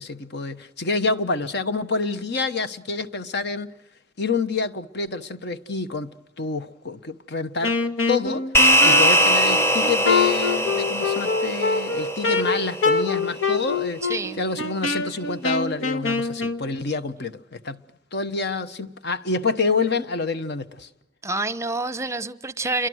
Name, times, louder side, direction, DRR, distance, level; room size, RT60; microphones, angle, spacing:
voice 1, 0.0-3.7 4.2-7.8 8.1-8.4 8.8-14.0 14.4-17.8 18.1-20.9, left 4 dB, 60° left, 1.1 m, -27 dB
Wind instrument woodwind instrument, 7.6-16.6, left 4 dB, 80° left, 1.5 m, -25 dB
sound 1, 8.5-13.2, right 1 dB, 15° left, 1.0 m, -21 dB
voice 2, 14.0-14.4 21.2-22.9, right 2 dB, 15° right, 0.8 m, -27 dB
28.5 x 23.5 x 6.4 m
head